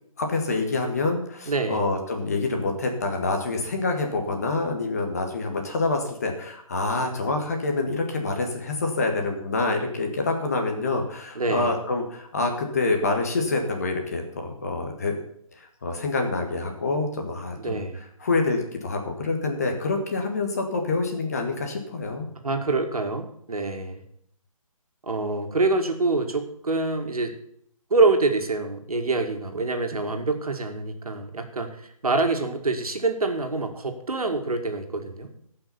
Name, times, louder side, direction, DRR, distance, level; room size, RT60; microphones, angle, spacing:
voice 1, 0.2-15.1 15.5-22.3, left 3 dB, 25° left, 3 dB, 1.5 m, -27 dB
voice 2, 1.5-1.9 11.4-11.8 17.6-18.0 22.4-24.0 25.0-27.3 27.9-31.8 32.0-35.3, right 3 dB, 85° right, 5 dB, 2.1 m, -25 dB
15.0 x 5.8 x 7.0 m, 0.69 s
hypercardioid pair, 175°, 18 cm